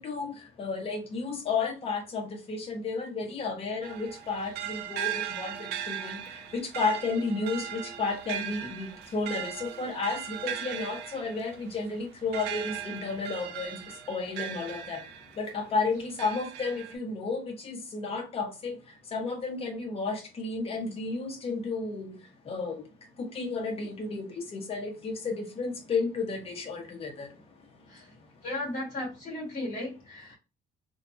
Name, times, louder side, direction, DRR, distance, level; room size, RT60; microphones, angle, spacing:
voice 1, 0.0-28.4, left 4 dB, 35° left, 0.7 m, -33 dB
sound 1, 3.8-15.5 16.0-17.0, right 10 dB, 80° right, 0.4 m, -38 dB
voice 2, 28.4-30.4, left 1 dB, 50° left, 1.5 m, -35 dB
2.5 x 2.2 x 2.5 m
cardioid pair, 140°, 17 cm